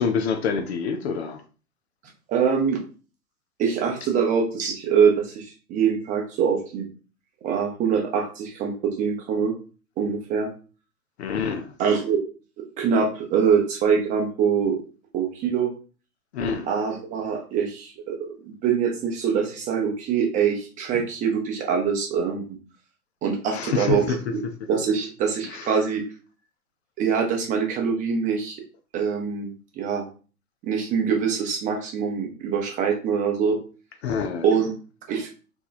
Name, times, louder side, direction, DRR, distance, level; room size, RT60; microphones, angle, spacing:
voice 1, 0.0-1.4 11.2-11.7 16.3-16.7 23.5-24.5 25.4-25.9 34.0-34.6, left 6 dB, 50° left, 0.5 m, -27 dB
voice 2, 2.3-2.8 3.6-6.9 7.4-9.5 10.0-10.5 11.8-12.2 12.6-14.8 15.1-15.7 16.7-22.6 23.2-24.0 24.3-24.4 24.7-26.0 27.0-28.6 28.9-29.5 29.8-30.0 30.6-33.6 34.4-34.7 35.1-35.3, right 6 dB, 15° right, 0.7 m, -24 dB
2.9 x 2.2 x 4.0 m
hypercardioid pair, 115°, 45 cm